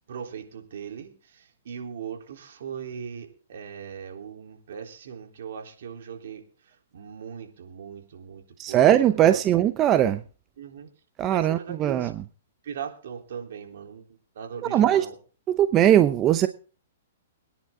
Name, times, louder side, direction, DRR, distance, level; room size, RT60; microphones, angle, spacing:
voice 1, 0.1-9.4 10.6-10.9 11.3-12.1 12.6-14.0 14.3-15.1, right 7 dB, 70° right, 4 dB, 3.6 m, -39 dB
voice 2, 8.6-10.2 11.2-12.1 14.7-15.1 15.5-16.5, right 11 dB, 25° right, 11 dB, 0.7 m, -20 dB
23.5 x 10.5 x 3.8 m, 0.38 s
hypercardioid pair, 140°, 0 cm